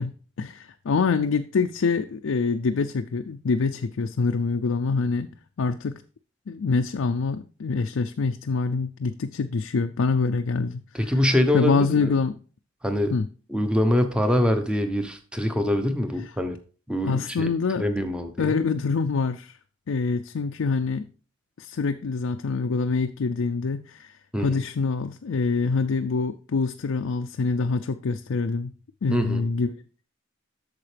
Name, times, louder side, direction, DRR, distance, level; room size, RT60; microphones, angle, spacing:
voice 1, 0.0-5.3 5.6-6.0 6.5-11.1 11.5-12.4 13.1-13.3 17.1-17.9 18.4-19.6 19.9-21.1 21.6-24.1 24.4-28.7 29.0-29.8, left 4 dB, 80° left, 6 dB, 0.4 m, -25 dB
voice 2, 10.9-12.1 12.8-13.1 13.5-16.6 16.9-17.5 17.8-18.5 24.3-24.6 29.1-29.4, left 1 dB, 5° right, 7 dB, 0.8 m, -24 dB
8.6 x 6.6 x 3.3 m, 0.39 s
head